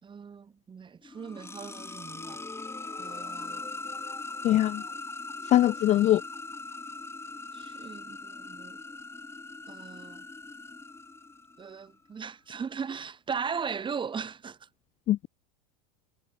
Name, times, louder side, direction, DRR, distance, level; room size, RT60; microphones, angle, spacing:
voice 1, 0.0-2.4 3.0-3.6 7.5-8.8 9.7-10.3 11.6-14.7, right 6 dB, 25° right, 3.7 m, -38 dB
sound 1, 1.0-11.8, left 3 dB, 10° left, 5.2 m, -41 dB
voice 2, 4.4-4.8 5.5-6.2 15.1-15.3, left 13 dB, 35° left, 0.6 m, -22 dB
hypercardioid pair, 105°, 21 cm